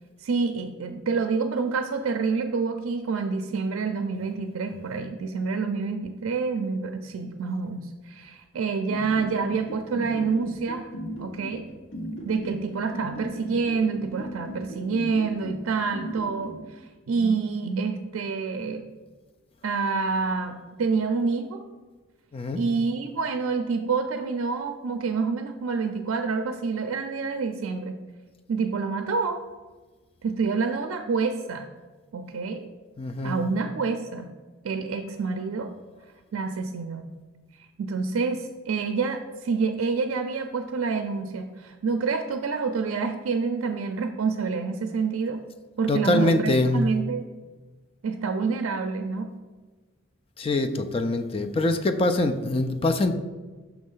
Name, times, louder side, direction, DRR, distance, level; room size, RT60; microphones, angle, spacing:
voice 1, 0.2-10.9 11.2-11.6 12.2-18.8 19.6-21.6 22.5-27.9 28.5-29.4 30.2-31.7 32.1-32.6 33.2-34.3 34.6-35.7 36.3-37.1 37.8-45.4 45.8-47.3 48.0-49.3, right 4 dB, 80° right, 6 dB, 0.4 m, -27 dB
sound 1, 8.9-16.5, equal, 60° left, 1.2 m, -35 dB
voice 2, 33.0-33.4 45.9-46.9 50.4-53.1, left 2 dB, 25° left, 8 dB, 0.3 m, -24 dB
5.9 x 3.2 x 5.4 m, 1.3 s
head